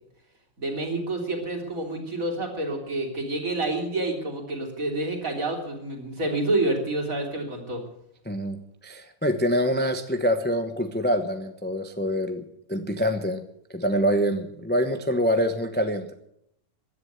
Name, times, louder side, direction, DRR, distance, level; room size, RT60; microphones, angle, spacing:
voice 1, 0.6-7.8, right 2 dB, 45° right, 2 dB, 3.8 m, -28 dB
voice 2, 8.3-13.4 13.7-16.1, equal, 10° left, 7 dB, 0.7 m, -25 dB
15.5 x 11.0 x 8.1 m, 0.74 s
omnidirectional pair, 2.0 m